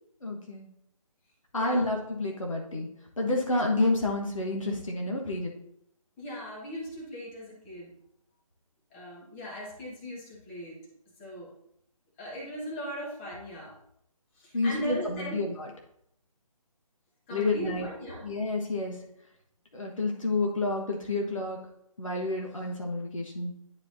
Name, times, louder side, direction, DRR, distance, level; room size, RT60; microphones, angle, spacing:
voice 1, 0.2-0.7 1.5-2.9 3.2-5.5 14.5-15.7 17.3-17.9 18.2-19.0 19.7-21.6 22.0-23.5, left 2 dB, 65° left, 0 dB, 1.3 m, -29 dB
voice 2, 6.2-7.9 8.9-10.8 11.2-11.5 12.2-13.8 14.4-15.4 17.3-18.2, equal, 20° left, -3 dB, 1.6 m, -38 dB
10.5 x 4.8 x 2.7 m, 0.74 s
figure-of-eight pair, 145°, 18 cm